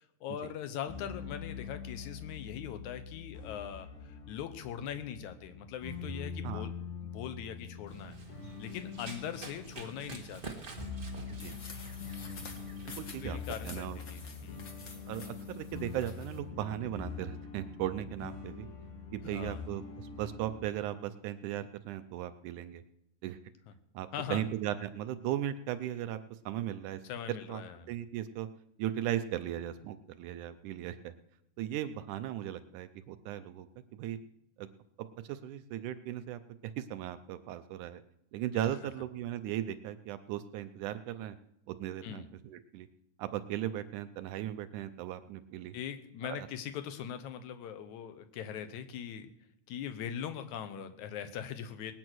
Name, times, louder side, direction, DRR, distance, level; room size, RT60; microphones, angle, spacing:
voice 1, 0.0-6.7 7.0-8.2 8.6-10.6 12.3-12.5 13.2-14.6 19.3-19.6 24.1-24.5 27.0-27.9 38.6-38.7 42.0-42.3 45.7-49.3 49.7-51.9, left 9 dB, 65° left, 10 dB, 2.2 m, -41 dB
sound 1, 0.9-20.7, left 5 dB, 90° left, 4.1 m, -44 dB
Run, 7.9-13.4, right 4 dB, 30° right, 1.0 m, -48 dB
sound 2, 11.4-16.4, left 4 dB, 45° left, 1.6 m, -50 dB
voice 2, 12.9-13.4 13.6-14.0 15.1-18.7 19.1-22.8 23.2-23.4 23.9-26.2 26.5-27.0 27.5-27.6 27.9-28.5 28.8-31.1 31.6-33.7 33.9-34.2 34.6-34.7 35.2-38.0 38.3-41.4 41.7-42.9 43.2-45.8 46.3-46.5, right 12 dB, 75° right, 11 dB, 1.9 m, -37 dB
19.5 x 9.2 x 6.2 m, 0.83 s
omnidirectional pair, 4.0 m